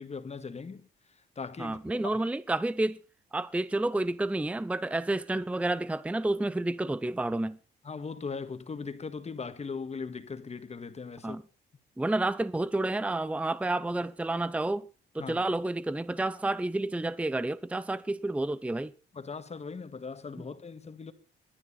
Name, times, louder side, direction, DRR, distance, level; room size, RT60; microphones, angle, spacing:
voice 1, 0.0-2.2 7.8-11.4 15.2-15.4 19.1-21.1, left 5 dB, 35° left, 1.8 m, -39 dB
voice 2, 1.6-3.0 3.3-7.6 11.2-11.4 12.0-14.9 15.1-18.9, right 2 dB, 5° right, 0.6 m, -30 dB
22.0 x 9.7 x 4.1 m
cardioid pair, 90°, 20 cm